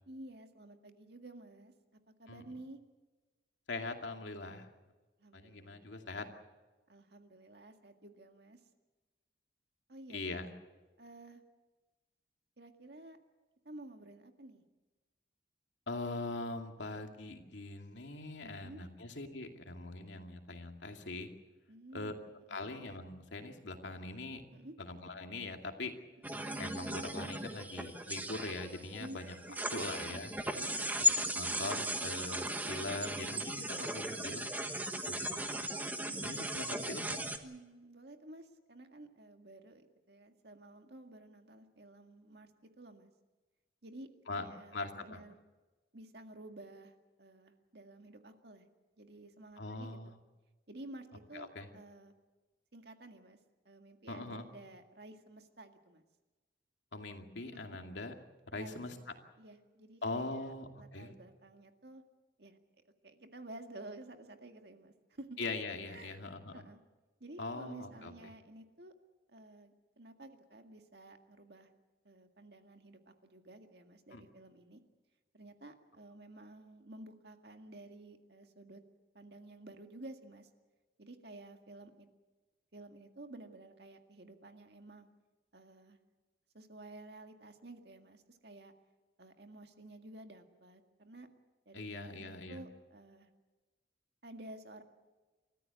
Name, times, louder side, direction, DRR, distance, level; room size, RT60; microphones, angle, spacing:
voice 1, 0.1-1.7 2.2-2.8 5.2-6.0 6.9-8.6 9.9-10.3 11.0-11.4 12.6-13.2 13.7-14.6 18.4-18.8 21.7-22.6 24.5-24.8 29.0-29.2 29.5-29.7 30.6-31.0 32.6-32.8 36.0-36.2 37.4-42.5 42.8-43.1 43.8-45.4 45.9-48.7 49.0-50.1 50.7-52.1 52.7-53.4 53.7-56.0 57.5-57.8 58.5-58.8 59.4-62.0 62.4-62.6 63.0-65.4 65.9-66.2 66.5-66.8 67.2-68.9 69.3-71.7 72.0-74.8 75.3-78.8 79.1-80.5 81.0-82.1 82.7-85.1 85.5-86.0 86.5-88.7 89.2-91.3 91.7-93.3 94.2-94.8, right 2 dB, 60° right, 5 dB, 2.0 m, -52 dB
voice 2, 3.7-4.7 5.3-6.3 10.1-10.5 15.9-21.3 21.9-22.1 22.5-24.4 24.8-25.9 26.6-29.3 29.7-30.3 31.3-34.5 35.1-35.5 36.2-37.2 44.3-44.4 44.7-45.2 49.6-50.2 51.3-51.7 54.1-54.5 56.9-58.1 58.5-59.0 60.0-61.1 65.4-66.6 67.4-68.1 74.1-74.2 91.7-92.6, left 2 dB, 80° left, 4 dB, 2.5 m, -42 dB
sound 1, 26.2-37.4, equal, 10° right, 1.3 m, -37 dB
30.0 x 14.0 x 8.3 m, 1.2 s
head